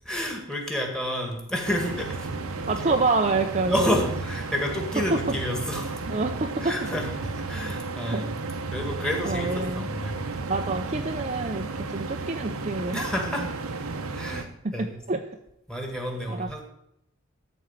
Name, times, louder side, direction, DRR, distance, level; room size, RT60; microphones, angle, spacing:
voice 1, 0.1-3.0 3.7-6.0 6.6-8.4 8.7-10.2 12.9-13.5 14.1-15.0 15.7-16.6, equal, 5° left, 2 dB, 1.9 m, -30 dB
sound 1, 1.6-14.4, right 3 dB, 85° right, 0.9 m, -33 dB
voice 2, 2.7-4.0 5.1-5.2 6.1-6.8 8.1-8.2 9.2-9.9 10.5-13.5 14.6-15.2 16.3-16.6, right 3 dB, 35° right, 5 dB, 0.6 m, -27 dB
13.5 x 4.5 x 7.4 m, 0.79 s
head